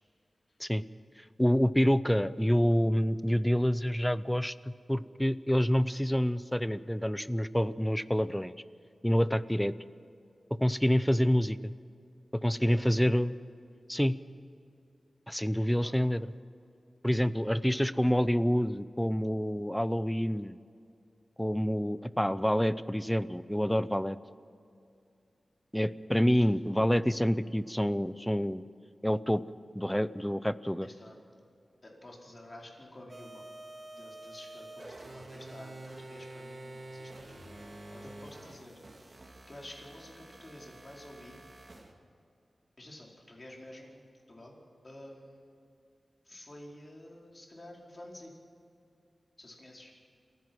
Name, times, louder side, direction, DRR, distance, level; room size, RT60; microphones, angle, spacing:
voice 1, 1.4-8.5 9.0-9.7 10.6-11.7 12.3-13.3 13.9-14.1 15.3-16.2 17.0-20.6 21.4-24.2 25.7-28.6 29.0-29.4 29.7-30.9, equal, 5° left, 15 dB, 0.6 m, -27 dB
voice 2, 12.6-13.1 15.8-15.9 17.9-18.1 30.8-31.2 31.8-33.4 33.9-38.8 39.5-41.4 42.8-45.5 46.2-48.3 49.4-49.9, left 1 dB, 35° left, -1 dB, 4.8 m, -50 dB
sound 1, 33.1-41.9, right 2 dB, 45° right, 2.6 m, -48 dB
27.5 x 16.0 x 6.2 m, 2.6 s
wide cardioid pair, 75°, 0 cm